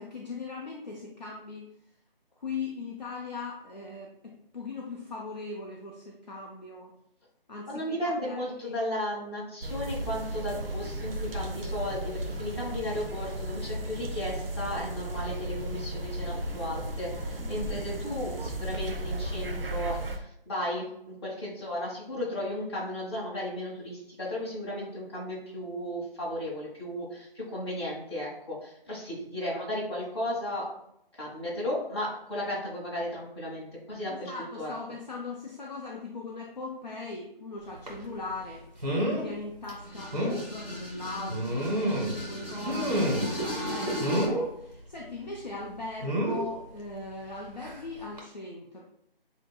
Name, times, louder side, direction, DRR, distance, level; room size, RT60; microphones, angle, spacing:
voice 1, 0.0-1.7 2.4-6.9 7.5-7.9 8.2-8.8 17.4-17.7 34.1-38.6 39.1-48.8, left 3 dB, 45° left, -3 dB, 0.7 m, -39 dB
voice 2, 7.7-30.7 31.2-34.3 34.6-34.7, left 1 dB, 25° left, -6 dB, 1.4 m, -35 dB
sound 1, 9.6-20.2, right 1 dB, 70° right, 0.7 m, -35 dB
sound 2, 37.9-38.0 38.8-39.3 39.7-39.8 40.1-40.4 41.3-42.2 42.6-43.4 44.0-44.4 46.0-46.4 47.6-47.8 48.2-48.3, equal, 45° right, 1.5 m, -28 dB
sound 3, 39.8-44.3, equal, 15° right, 1.1 m, -35 dB
8.0 x 2.9 x 2.3 m, 0.78 s
figure-of-eight pair, 175°, 29 cm